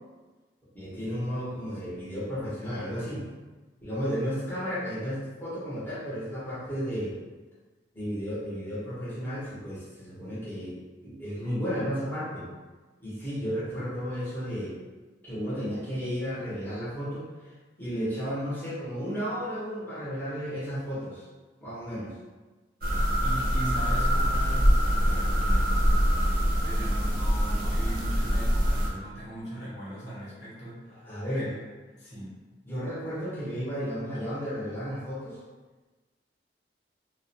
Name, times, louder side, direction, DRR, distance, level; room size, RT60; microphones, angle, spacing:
voice 1, 0.7-3.2 3.8-7.2 7.9-12.5 13.0-14.8 15.2-17.3 17.8-21.2 21.6-22.1 30.9-31.5 32.6-35.4, equal, 10° left, -11 dB, 0.7 m, -33 dB
sound 1, 22.8-28.9, equal, 55° right, 0.5 m, -24 dB
voice 2, 23.2-26.3 26.6-31.1 31.3-31.6 32.0-32.4, right 1 dB, 75° left, -9 dB, 1.0 m, -39 dB
2.3 x 2.0 x 2.6 m, 1.3 s
head